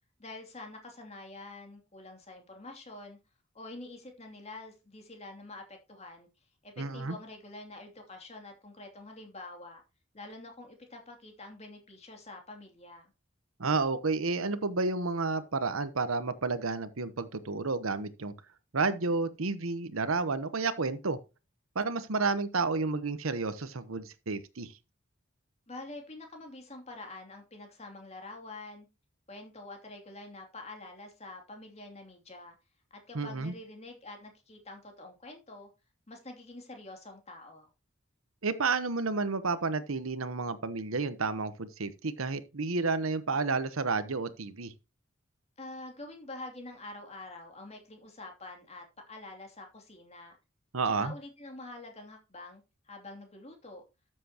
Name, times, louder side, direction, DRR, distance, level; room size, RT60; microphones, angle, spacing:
voice 1, 0.2-3.2 3.5-6.3 6.6-9.8 10.1-13.1 25.7-28.9 29.3-32.5 32.9-35.7 36.1-37.7 45.6-50.3 50.8-53.8, left 2 dB, 30° left, 2.8 m, -46 dB
voice 2, 6.8-7.2 13.6-18.3 18.7-21.2 21.7-24.7 33.1-33.5 38.4-44.7 50.7-51.1, right 4 dB, 80° right, 1.0 m, -31 dB
13.0 x 7.7 x 2.9 m
head